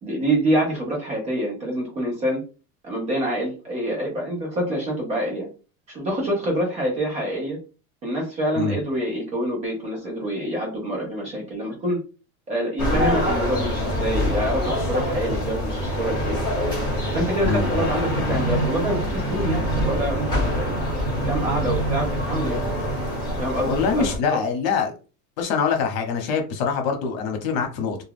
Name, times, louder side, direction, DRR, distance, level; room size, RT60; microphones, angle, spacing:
voice 1, 0.0-2.4 2.8-5.5 5.9-7.6 8.0-12.0 12.5-16.4 17.1-20.8 21.2-22.7 23.4-24.4, right 1 dB, 20° right, -1 dB, 0.4 m, -26 dB
sound 1, 12.8-24.2, equal, 10° left, 1.2 m, -25 dB
voice 2, 17.4-17.9 23.6-24.9 25.4-28.0, left 5 dB, 75° left, 5 dB, 0.9 m, -24 dB
2.3 x 2.2 x 3.4 m, 0.34 s
cardioid pair, 175°, 41 cm